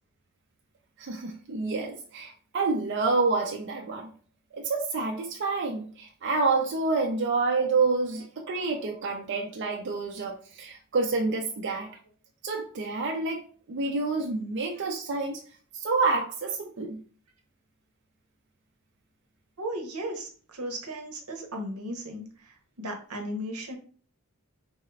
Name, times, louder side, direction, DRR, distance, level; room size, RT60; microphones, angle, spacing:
voice 1, 1.0-4.1 4.5-11.9 12.4-15.4 15.7-17.0, right 3 dB, 55° right, 2 dB, 0.5 m, -28 dB
voice 2, 19.6-23.8, equal, 90° right, 3 dB, 0.9 m, -36 dB
4.2 x 2.4 x 3.2 m, 0.43 s
head